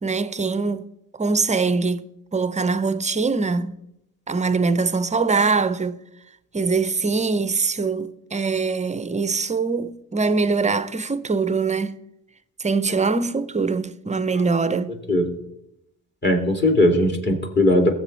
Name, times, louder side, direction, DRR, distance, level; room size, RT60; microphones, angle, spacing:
voice 1, 0.0-0.9 1.2-2.0 2.3-3.8 4.3-6.0 6.5-12.0 12.6-14.9, right 4 dB, 15° right, 0.7 m, -23 dB
voice 2, 16.2-17.9, left 1 dB, 25° left, 2.6 m, -19 dB
18.5 x 7.7 x 3.3 m
hypercardioid pair, 60°, 41 cm